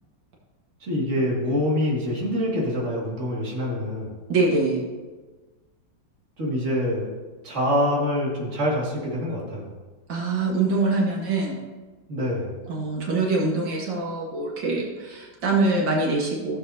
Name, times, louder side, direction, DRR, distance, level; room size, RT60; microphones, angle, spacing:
voice 1, 0.8-4.1 6.4-7.1 7.4-9.7 12.1-12.6, left 1 dB, 40° right, -4 dB, 2.5 m, -25 dB
voice 2, 4.3-4.8 10.1-11.6 12.7-16.6, right 3 dB, 85° right, -3 dB, 2.4 m, -24 dB
15.5 x 7.4 x 2.8 m, 1.3 s
omnidirectional pair, 2.0 m